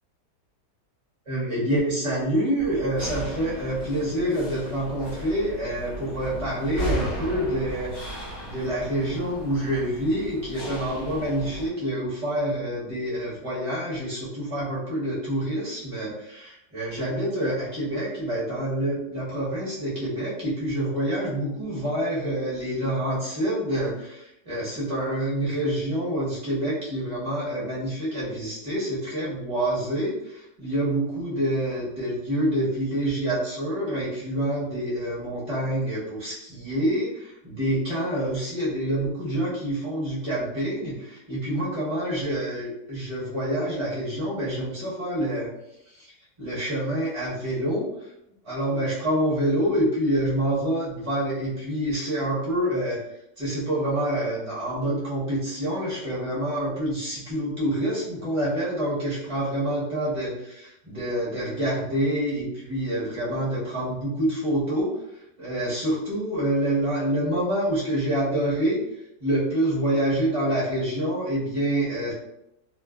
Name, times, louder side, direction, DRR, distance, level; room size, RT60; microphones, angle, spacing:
voice 1, 1.3-7.9 8.4-45.5 45.9-46.1 46.4-47.9 48.4-53.0 53.4-65.0 65.4-68.8 69.2-72.1, right 1 dB, 25° right, -8 dB, 0.8 m, -27 dB
sound 1, 2.6-11.7, right 1 dB, 90° left, 0.4 m, -35 dB
2.6 x 2.5 x 2.3 m, 0.83 s
omnidirectional pair, 1.9 m